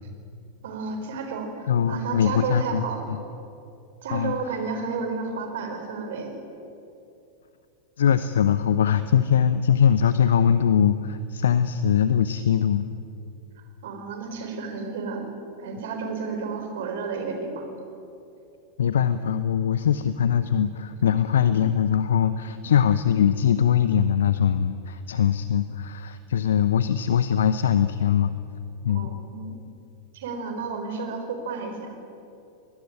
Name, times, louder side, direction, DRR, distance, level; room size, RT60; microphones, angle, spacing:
voice 1, 0.6-3.1 4.0-6.3 13.8-15.3 15.6-17.7 28.9-29.6 30.1-31.9, right 4 dB, 55° right, 5 dB, 4.5 m, -32 dB
voice 2, 1.7-3.2 4.1-4.3 8.0-12.9 18.8-28.3 28.8-29.1, left 8 dB, 65° left, 13 dB, 0.8 m, -22 dB
24.5 x 20.0 x 8.8 m, 2.7 s
figure-of-eight pair, 90°, 0 cm